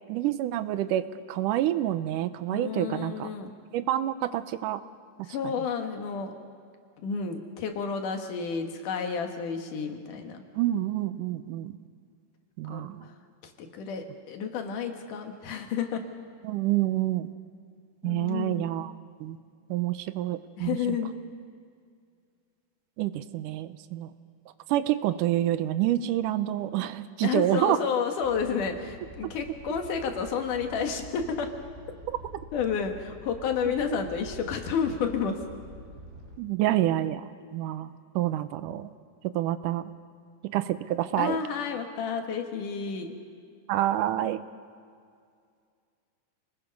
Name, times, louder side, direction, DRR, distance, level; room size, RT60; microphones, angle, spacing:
voice 1, 0.1-1.0 1.3-3.3 3.7-4.8 5.4-5.5 10.6-11.7 12.6-13.1 16.4-17.3 18.0-18.9 19.2-19.4 19.7-21.0 23.0-24.1 24.7-27.8 32.1-32.2 36.4-37.3 37.5-37.9 38.2-38.9 39.3-39.8 40.5-41.4 43.7-44.4, right 13 dB, 85° right, 12 dB, 2.3 m, -27 dB
voice 2, 2.5-3.5 5.3-6.3 7.0-10.4 12.7-13.1 13.4-16.0 18.0-18.7 20.6-21.1 27.2-31.5 32.5-35.4 41.2-43.2, left 6 dB, 80° left, 4 dB, 3.1 m, -31 dB
Animal, 28.2-36.4, right 1 dB, 25° right, 2.7 m, -46 dB
28.0 x 19.5 x 5.3 m, 2.2 s
omnidirectional pair, 3.6 m